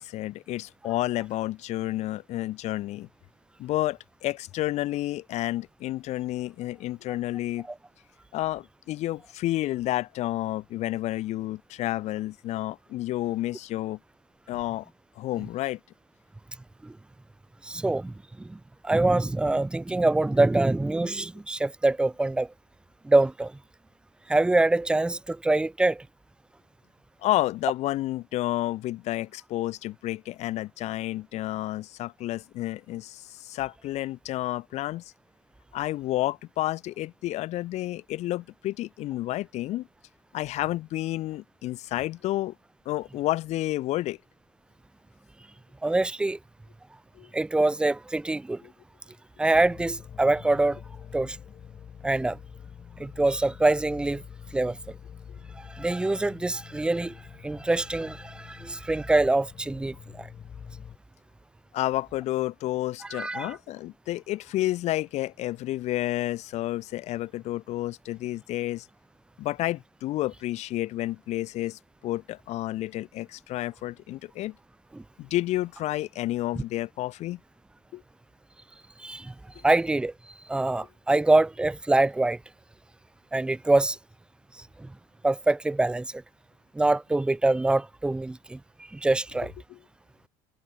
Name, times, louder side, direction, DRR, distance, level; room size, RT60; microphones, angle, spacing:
voice 1, 0.0-3.1 3.6-7.7 8.3-14.0 14.5-14.9 15.2-15.8 27.2-35.0 35.7-39.9 40.3-42.5 42.9-44.2 47.2-47.3 48.6-48.7 61.7-68.9 69.4-74.6 75.2-77.4 77.9-78.0 89.7-89.8, left 15 dB, 55° left, 2.2 m, -30 dB
voice 2, 17.6-22.5 23.0-23.5 24.3-26.1 45.8-46.4 47.3-48.6 49.4-50.8 51.1-51.4 52.0-52.4 53.0-54.2 54.5-54.8 55.6-60.3 63.1-63.6 74.9-75.0 79.0-79.3 79.6-80.1 80.5-82.4 83.3-84.0 84.8-84.9 85.2-86.2 86.7-88.6 88.9-89.5, right 2 dB, 5° right, 0.6 m, -25 dB
sound 1, 49.5-61.0, left 8 dB, 35° left, 1.6 m, -46 dB
supercardioid pair, 110°, 13 cm